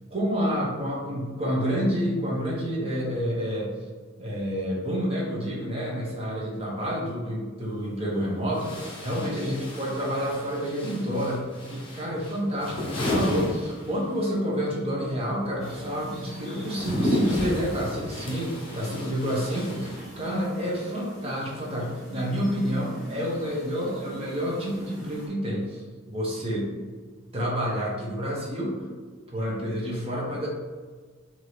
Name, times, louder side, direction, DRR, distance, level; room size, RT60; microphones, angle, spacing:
voice 1, 0.1-3.7 4.2-26.8 27.3-28.9 29.3-30.5, equal, 30° right, -4 dB, 0.9 m, -29 dB
sound 1, 7.6-7.7 8.5-14.3 14.6-20.4, left 1 dB, 25° left, 0.8 m, -32 dB
sound 2, 15.6-25.3, right 1 dB, ahead, 1.5 m, -45 dB
4.6 x 2.7 x 3.1 m, 1.5 s
head